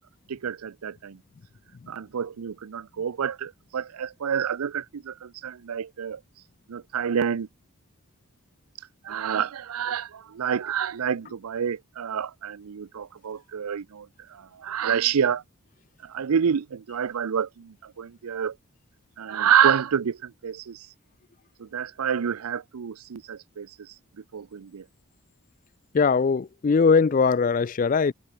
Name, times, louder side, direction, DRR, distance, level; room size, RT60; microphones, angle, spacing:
voice 1, 0.3-1.2 1.9-6.2 6.7-7.5 9.0-15.4 16.0-18.5 19.2-20.9 21.6-23.7 24.3-24.8, right 8 dB, 90° right, 0.5 m, -28 dB
voice 2, 25.9-28.1, left 5 dB, 35° left, 0.3 m, -20 dB
head